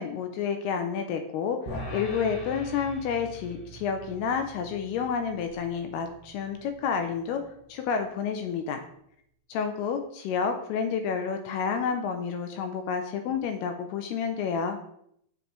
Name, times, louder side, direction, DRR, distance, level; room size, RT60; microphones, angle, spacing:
voice 1, 0.0-7.4 7.7-8.8 9.5-14.8, left 6 dB, 80° left, 6 dB, 2.4 m, -30 dB
sound 1, 1.7-8.0, equal, 55° left, 1.7 m, -43 dB
8.8 x 7.3 x 3.2 m, 0.71 s
omnidirectional pair, 5.2 m